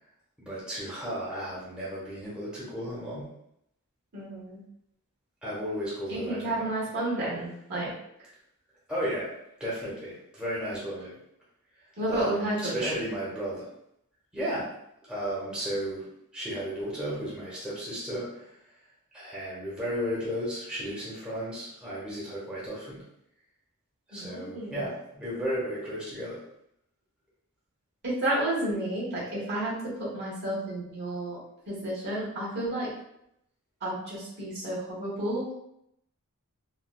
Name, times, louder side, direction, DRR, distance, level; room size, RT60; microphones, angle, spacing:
voice 1, 0.4-3.3 5.4-6.7 8.9-9.3 9.6-11.1 12.1-13.7 14.3-14.7 15.1-16.1 16.3-18.6 19.1-23.0 24.1-26.4, equal, 5° right, -8 dB, 0.8 m, -34 dB
voice 2, 4.1-4.6 6.1-7.9 12.0-12.9 24.1-24.8 28.0-31.4 31.7-32.9 33.8-35.5, right 1 dB, 50° right, -7 dB, 1.3 m, -31 dB
4.0 x 2.2 x 2.2 m, 0.77 s
head